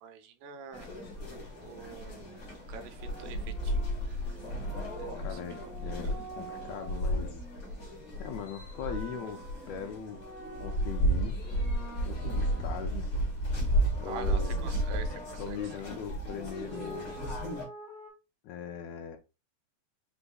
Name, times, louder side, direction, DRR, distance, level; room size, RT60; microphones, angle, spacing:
voice 1, 0.0-0.9 1.6-2.4 2.7-4.2 5.0-5.4 6.0-6.2 14.1-15.1 15.5-15.6, right 6 dB, 85° right, 2.3 m, -45 dB
sound 1, 0.7-17.6, equal, 50° left, 1.0 m, -33 dB
sound 2, 2.9-7.1 8.2-11.2 11.5-13.1 13.7-15.6 16.6-18.1, right 2 dB, ahead, 0.8 m, -48 dB
voice 2, 5.2-7.4 8.2-10.3 10.6-11.4 12.0-13.1 14.0-14.6 15.4-17.2 18.4-19.2, left 7 dB, 85° left, 1.6 m, -40 dB
5.2 x 3.5 x 2.3 m
omnidirectional pair, 3.9 m